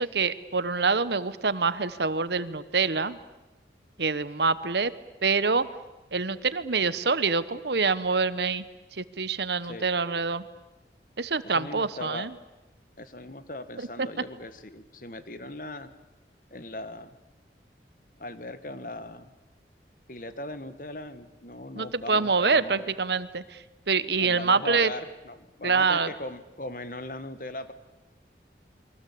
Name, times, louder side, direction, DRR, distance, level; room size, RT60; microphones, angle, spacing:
voice 1, 0.0-3.2 4.0-4.9 5.2-5.7 6.1-8.6 8.9-10.4 11.2-12.3 13.8-14.1 21.8-24.9 25.6-26.1, right 4 dB, 75° right, 15 dB, 1.2 m, -26 dB
voice 2, 11.4-12.3 13.0-15.9 16.5-17.2 18.2-19.3 20.1-22.9 24.2-27.7, left 1 dB, 50° left, 11 dB, 1.7 m, -39 dB
28.5 x 23.0 x 8.6 m, 1.0 s
head